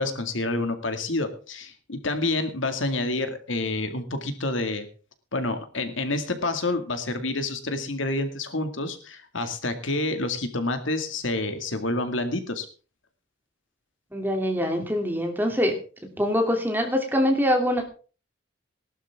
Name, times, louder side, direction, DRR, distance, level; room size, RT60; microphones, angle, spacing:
voice 1, 0.0-4.9 5.3-12.7, left 2 dB, 80° left, 8 dB, 2.1 m, -28 dB
voice 2, 14.1-15.7 16.0-17.8, equal, 10° right, 3 dB, 2.8 m, -24 dB
19.0 x 12.0 x 3.6 m, 0.36 s
head